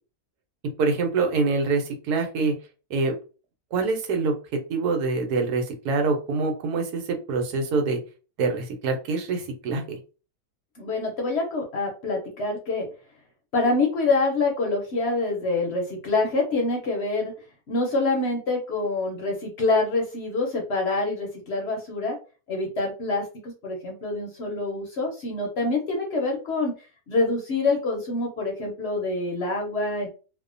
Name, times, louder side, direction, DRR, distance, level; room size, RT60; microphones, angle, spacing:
voice 1, 0.6-2.5 2.9-3.2 3.7-4.3 4.7-8.0 8.4-10.0, right 4 dB, 85° right, 4 dB, 1.2 m, -25 dB
voice 2, 10.8-12.9 13.5-17.3 17.7-22.2 22.5-26.7 27.1-30.1, left 3 dB, 55° left, 1 dB, 0.8 m, -26 dB
2.7 x 2.1 x 2.5 m, 0.34 s
omnidirectional pair, 1.6 m